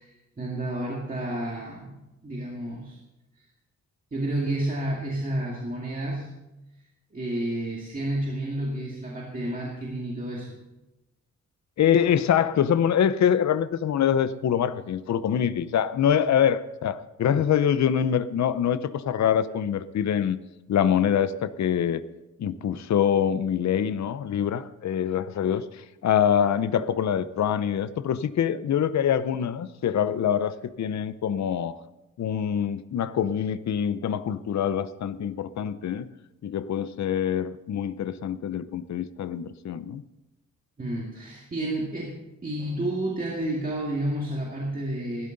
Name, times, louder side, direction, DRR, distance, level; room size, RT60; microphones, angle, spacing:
voice 1, 0.0-3.0 4.1-6.3 7.1-10.6 40.8-45.3, right 1 dB, 25° right, 2.2 m, -30 dB
voice 2, 11.8-20.4 20.7-22.0 22.4-31.8 32.2-36.1 36.4-40.0, left 9 dB, 65° left, 0.6 m, -25 dB
16.5 x 12.5 x 4.0 m
wide cardioid pair, 155°, 31 cm